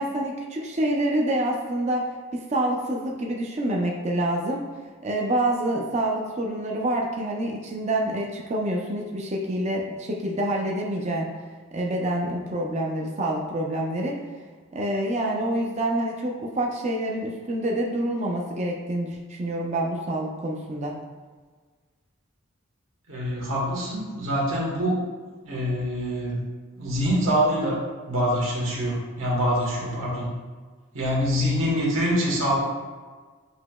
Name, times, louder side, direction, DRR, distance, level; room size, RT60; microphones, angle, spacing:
voice 1, 0.0-4.7 5.0-11.3 11.7-14.3 14.7-21.0, right 1 dB, 30° right, -1 dB, 0.5 m, -27 dB
voice 2, 23.1-25.0 25.4-26.4 26.8-30.4 30.9-32.6, equal, 65° right, -4 dB, 1.3 m, -25 dB
8.0 x 2.9 x 2.3 m, 1.4 s
head